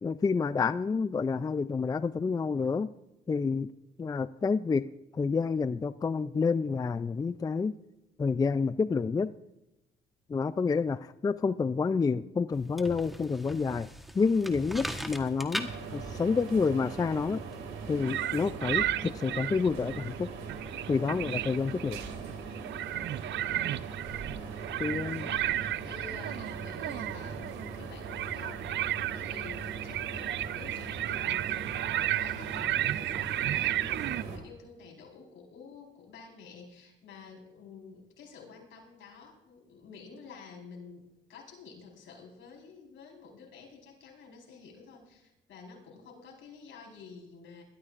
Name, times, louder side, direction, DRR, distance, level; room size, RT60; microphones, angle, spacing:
voice 1, 0.0-2.9 3.3-3.7 4.0-4.9 5.1-7.7 8.2-9.3 10.3-13.9 14.1-17.4 17.9-20.3 20.9-22.0 24.8-25.3, left 5 dB, 20° left, 15 dB, 0.3 m, -29 dB
sound 1, 12.5-18.0, equal, ahead, 1.2 m, -41 dB
sound 2, 15.6-34.4, right 5 dB, 90° right, 2.3 m, -41 dB
sound 3, 18.0-20.2 20.5-22.1 22.5-34.2, right 13 dB, 65° right, 0.4 m, -33 dB
voice 2, 24.9-47.6, left 5 dB, 75° left, -1 dB, 4.4 m, -50 dB
21.5 x 13.0 x 2.5 m, 0.92 s
cardioid pair, 90°, 20 cm